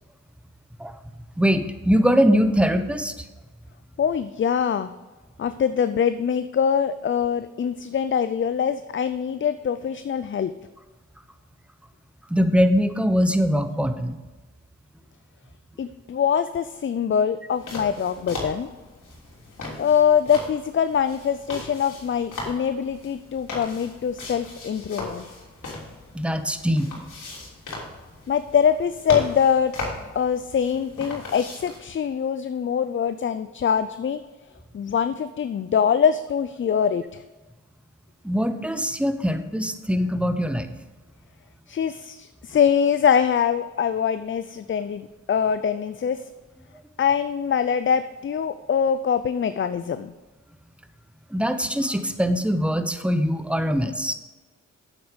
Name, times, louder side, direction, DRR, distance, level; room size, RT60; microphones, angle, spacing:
voice 1, 1.4-3.1 12.3-14.2 26.1-26.9 38.2-40.7 51.3-54.1, equal, 5° right, 9 dB, 1.0 m, -22 dB
voice 2, 4.0-4.9 5.4-10.5 15.8-18.7 19.8-25.2 28.3-29.7 30.2-34.2 34.7-37.2 41.7-46.2 47.0-50.1, left 7 dB, 40° left, 11 dB, 0.5 m, -23 dB
sound 1, 17.5-31.8, left 2 dB, 70° left, 3.3 m, -38 dB
8.4 x 7.9 x 5.2 m, 1.2 s
cardioid pair, 60°, 32 cm